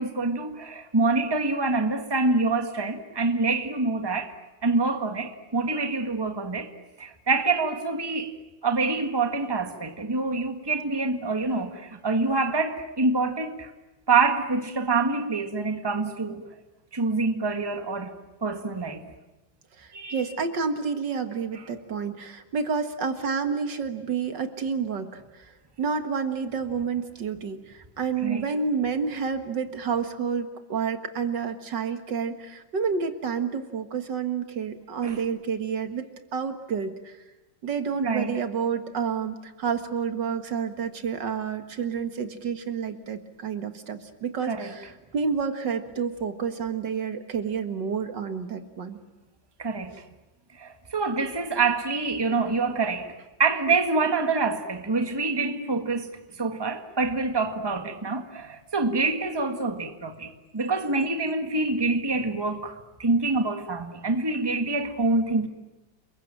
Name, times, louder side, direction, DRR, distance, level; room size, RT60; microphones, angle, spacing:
voice 1, 0.0-4.3 4.6-6.7 7.0-8.3 8.6-13.7 14.1-16.4 16.9-19.1 19.9-20.2 21.5-21.6 28.2-28.4 35.0-35.2 38.0-38.4 44.4-44.7 49.6-50.0 50.5-53.1 53.4-65.5, right 3 dB, 15° right, 1.7 m, -26 dB
voice 2, 19.8-25.5 25.8-36.0 36.3-37.1 37.6-49.0, right 6 dB, 70° right, 2.3 m, -29 dB
29.5 x 22.0 x 9.1 m
omnidirectional pair, 2.0 m